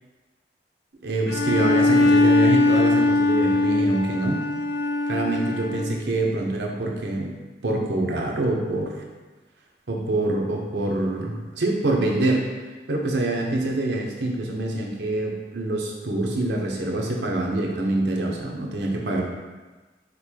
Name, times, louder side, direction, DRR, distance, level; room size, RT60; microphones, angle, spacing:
voice 1, 1.0-4.4 5.1-7.3 7.6-8.9 9.9-12.4 12.9-19.2, right 2 dB, 75° right, -1 dB, 0.8 m, -25 dB
Bowed string instrument, 1.3-6.0, left 2 dB, 85° left, 0.5 m, -20 dB
5.2 x 2.2 x 4.5 m, 1.3 s
head